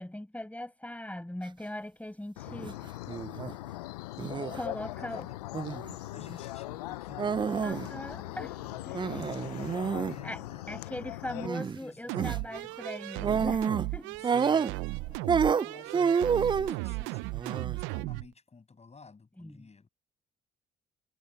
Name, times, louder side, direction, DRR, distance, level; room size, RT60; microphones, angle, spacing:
voice 1, 0.0-2.8 4.5-5.3 7.6-8.6 8.9-9.2 10.2-10.4 10.7-14.2 19.4-19.7, left 1 dB, 5° left, 6.9 m, -40 dB
sound 1, 2.4-11.5, left 17 dB, 90° left, 0.5 m, -40 dB
sound 2, 2.5-2.7 3.1-3.5 4.2-4.6 5.5-5.9 7.2-7.9 8.1-8.2 8.9-10.2 11.4-11.8 12.1-12.4 13.2-13.9 14.2-15.0 15.3-16.8 17.3-17.8, right 6 dB, 25° right, 0.3 m, -28 dB
voice 2, 5.0-5.4 6.1-8.8 10.1-10.8 11.2-12.7 14.2-17.3 17.7-19.9, left 4 dB, 35° left, 7.7 m, -52 dB
sound 3, 12.1-18.3, right 26 dB, 75° right, 0.5 m, -36 dB
hypercardioid pair, 50°, 20 cm